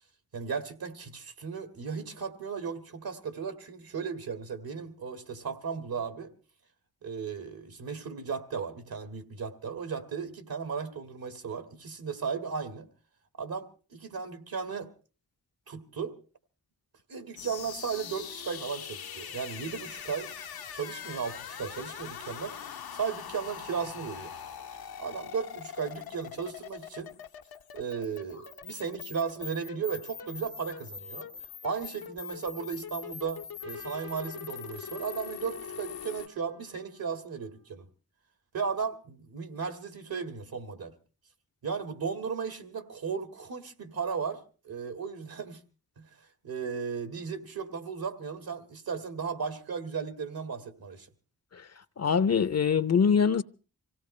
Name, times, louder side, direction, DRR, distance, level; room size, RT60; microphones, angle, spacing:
voice 1, 0.3-6.3 7.0-12.9 13.4-14.9 15.7-16.2 17.1-20.3 20.7-24.3 25.0-27.1 27.7-31.3 31.6-37.9 38.5-40.9 41.6-45.6 46.0-46.1 46.4-51.1, right 6 dB, 70° right, 2.0 m, -35 dB
sound 1, 17.4-36.3, left 8 dB, 75° left, 0.9 m, -42 dB
Trumpet, 33.6-37.7, right 4 dB, 90° right, 3.9 m, -55 dB
voice 2, 52.0-53.4, left 6 dB, 45° left, 0.7 m, -24 dB
25.0 x 17.0 x 3.2 m
cardioid pair, 45°, 37 cm